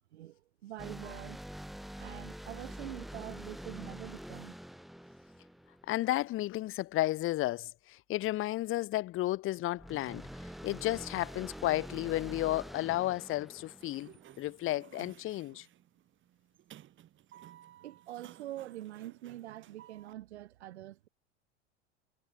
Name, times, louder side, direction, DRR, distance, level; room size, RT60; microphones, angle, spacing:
voice 1, 0.1-1.4 2.0-4.6 17.8-21.1, right 14 dB, 70° right, 4.9 m, -45 dB
sound 1, 0.8-6.3 9.8-14.5, equal, ahead, 0.3 m, -46 dB
voice 2, 5.9-15.7, left 16 dB, 40° left, 1.2 m, -33 dB
Sliding door, 13.6-20.1, right 12 dB, 35° right, 2.5 m, -56 dB
hypercardioid pair, 90°, 34 cm